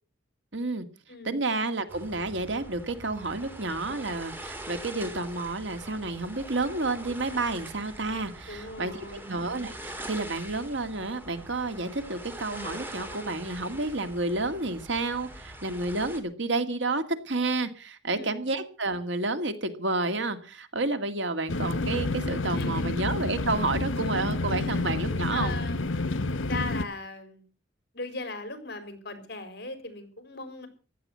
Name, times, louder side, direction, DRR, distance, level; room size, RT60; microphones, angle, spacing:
voice 1, 0.5-0.9 1.2-25.6, right 2 dB, 70° right, 9 dB, 2.1 m, -30 dB
sound 1, 1.9-16.2, right 1 dB, 10° right, 3.2 m, -43 dB
voice 2, 8.5-9.3 18.0-18.4 22.5-22.8 24.6-24.9 25.3-27.4 27.9-30.7, left 3 dB, 55° left, 10 dB, 4.5 m, -39 dB
sound 2, 21.5-26.8, left 2 dB, 90° left, 1.0 m, -29 dB
15.5 x 12.0 x 6.3 m, 0.37 s
head